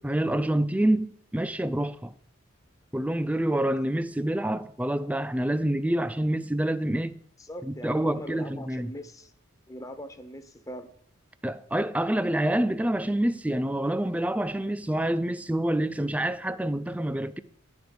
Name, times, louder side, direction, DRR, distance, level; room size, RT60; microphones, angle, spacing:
voice 1, 0.0-2.1 2.9-7.2 7.6-8.9 11.4-17.4, right 1 dB, 5° right, 0.3 m, -27 dB
voice 2, 7.4-9.3 9.7-10.9, equal, 15° left, 0.7 m, -41 dB
10.5 x 5.3 x 7.7 m
head